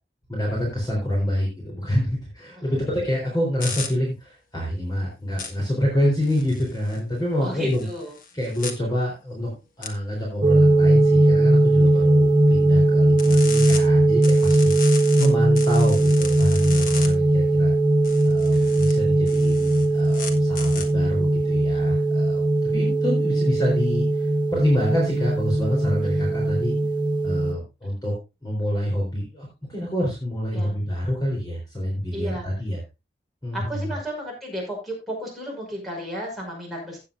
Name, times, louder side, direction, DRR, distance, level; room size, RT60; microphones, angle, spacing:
voice 1, 0.3-7.9 8.3-9.5 9.8-14.8 15.2-17.7 18.2-26.7 27.2-28.1 28.4-32.8 33.4-33.8, equal, 25° left, -2 dB, 3.8 m, -27 dB
sound 1, 3.6-3.9 5.4-5.5 6.2-7.0 7.7-8.7 9.8-9.9 13.2-13.8 14.2-15.3 15.6-17.1 18.0-19.0 19.3-20.8, left 5 dB, 50° left, 1.6 m, -35 dB
voice 2, 7.4-8.1 11.9-12.1 18.5-18.8 26.2-26.3 30.5-30.8 32.1-32.4 33.5-37.0, equal, ahead, -4 dB, 5.5 m, -33 dB
sound 2, 10.4-27.5, right 1 dB, 25° right, 1.1 m, -19 dB
15.5 x 8.5 x 2.6 m, 0.28 s
head